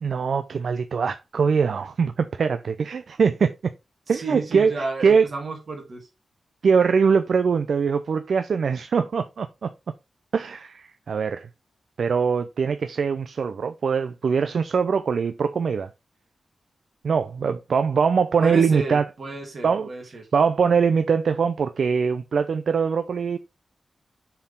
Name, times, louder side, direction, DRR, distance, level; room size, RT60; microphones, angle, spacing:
voice 1, 0.0-3.5 4.1-5.3 6.6-9.7 10.3-11.5 12.0-15.9 17.0-19.0 19.6-19.9 20.3-23.4, right 6 dB, 65° right, 0.5 m, -22 dB
voice 2, 4.1-6.1 18.4-20.3, right 3 dB, 50° right, 2.8 m, -32 dB
7.1 x 4.6 x 3.7 m
wide cardioid pair, 165°, 0 cm